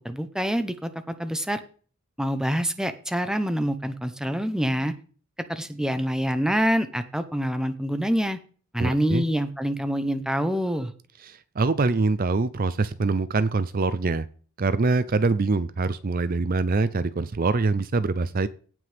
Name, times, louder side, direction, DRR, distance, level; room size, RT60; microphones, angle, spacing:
voice 1, 0.0-1.6 2.2-5.0 5.5-8.4 8.7-10.9, equal, 5° right, 10 dB, 0.9 m, -26 dB
voice 2, 8.8-9.2 11.2-14.2 14.6-18.5, right 3 dB, 40° right, 14 dB, 0.5 m, -24 dB
17.0 x 6.1 x 3.5 m, 0.40 s
head